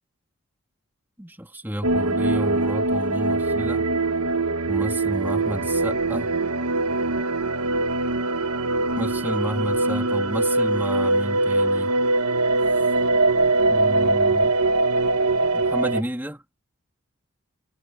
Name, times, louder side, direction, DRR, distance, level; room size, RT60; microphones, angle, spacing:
voice 1, 1.2-3.9 4.7-6.3 9.0-11.9 13.7-14.6 15.5-16.4, equal, 10° right, 2.7 m, -31 dB
sound 1, 1.8-16.0, right 2 dB, 85° right, 1.4 m, -22 dB
head